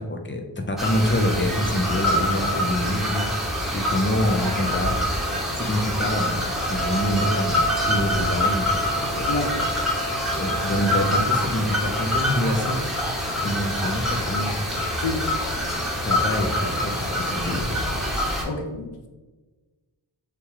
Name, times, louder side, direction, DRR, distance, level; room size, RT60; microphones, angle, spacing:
voice 1, 0.0-5.0 5.6-9.3 10.3-13.0 13.4-14.6 16.0-17.7, left 1 dB, 25° left, 3 dB, 0.7 m, -26 dB
sound 1, 0.8-18.4, left 1 dB, ahead, 1.1 m, -25 dB
Wind instrument woodwind instrument, 6.6-11.3, right 4 dB, 60° right, 0.9 m, -34 dB
voice 2, 9.3-9.6 15.0-15.3 18.4-19.1, left 3 dB, 75° left, 3 dB, 0.7 m, -28 dB
6.8 x 2.3 x 3.2 m, 1.2 s
wide cardioid pair, 70°, 44 cm